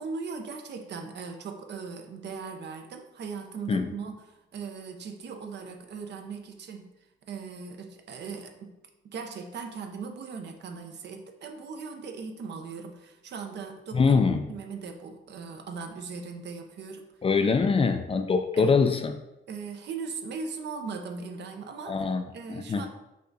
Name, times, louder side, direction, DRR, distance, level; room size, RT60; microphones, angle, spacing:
voice 1, 0.0-6.9 7.3-8.8 9.0-17.1 18.6-18.7 19.5-22.0 22.3-22.9, right 5 dB, 60° right, 5 dB, 0.7 m, -39 dB
voice 2, 13.9-14.4 17.2-19.1 21.9-22.2 22.5-22.8, left 5 dB, 30° left, 7 dB, 0.4 m, -23 dB
5.5 x 2.4 x 3.9 m, 0.92 s
cardioid pair, 90°, 20 cm